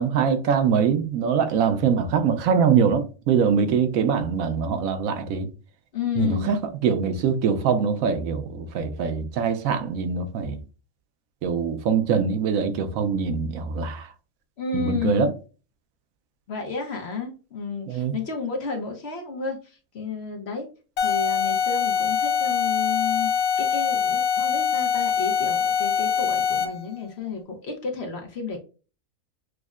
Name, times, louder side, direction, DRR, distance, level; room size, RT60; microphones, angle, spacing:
voice 1, 0.0-5.5 6.2-10.6 11.4-14.1 14.7-15.3 17.9-18.2, right 6 dB, 75° right, 1.0 m, -23 dB
voice 2, 5.9-6.5 14.6-15.3 16.5-20.7 21.0-28.6, left 5 dB, 55° left, 0.9 m, -31 dB
sound 1, 21.0-26.9, left 7 dB, 85° left, 1.2 m, -23 dB
6.1 x 2.1 x 2.4 m
omnidirectional pair, 1.5 m